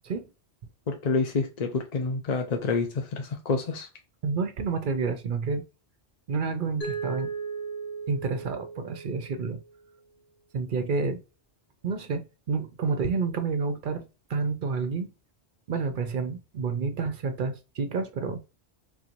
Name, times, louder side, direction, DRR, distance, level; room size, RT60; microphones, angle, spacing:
voice 1, 0.9-3.9, left 4 dB, 50° left, 0.6 m, -28 dB
voice 2, 4.2-5.6 6.3-7.3 8.1-9.6 10.5-11.2 11.8-14.0 14.3-15.1 15.7-18.5, right 4 dB, 55° right, 0.6 m, -29 dB
Mallet percussion, 6.8-9.7, right 5 dB, 65° left, 1.6 m, -36 dB
3.7 x 3.0 x 2.4 m
omnidirectional pair, 1.2 m